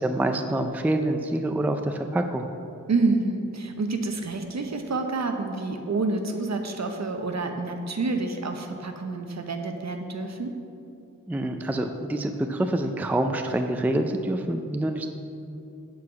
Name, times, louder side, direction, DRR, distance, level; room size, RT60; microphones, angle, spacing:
voice 1, 0.0-2.5 11.3-15.1, right 1 dB, 5° right, 6 dB, 0.4 m, -26 dB
voice 2, 2.9-10.5, right 3 dB, 55° right, 5 dB, 0.9 m, -28 dB
8.3 x 4.8 x 7.0 m, 2.6 s
wide cardioid pair, 90°, 33 cm